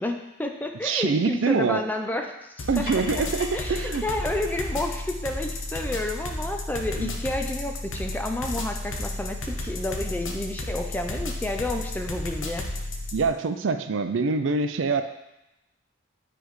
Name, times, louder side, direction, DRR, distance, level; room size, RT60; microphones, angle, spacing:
voice 1, 0.0-2.9 3.5-12.7, left 1 dB, 10° left, 4 dB, 0.4 m, -30 dB
voice 2, 0.8-1.8 2.7-4.0 7.0-7.1 13.1-15.0, right 4 dB, 70° right, 8 dB, 0.4 m, -25 dB
sound 1, 2.6-13.3, left 1 dB, 75° left, 0.8 m, -32 dB
sound 2, 2.6-7.5, left 1 dB, 45° left, 1.4 m, -45 dB
9.8 x 3.4 x 3.1 m, 0.93 s
head